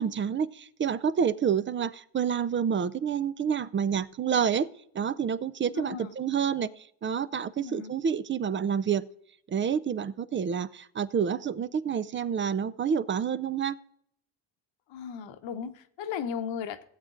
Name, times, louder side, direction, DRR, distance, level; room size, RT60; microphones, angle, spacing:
voice 1, 0.0-4.7 4.9-9.1 9.5-13.8, right 7 dB, 25° right, 0.3 m, -28 dB
voice 2, 5.7-6.1 7.6-7.9 14.9-16.8, left 7 dB, 60° left, 1.1 m, -36 dB
17.0 x 7.9 x 2.5 m
supercardioid pair, 80°, 50 cm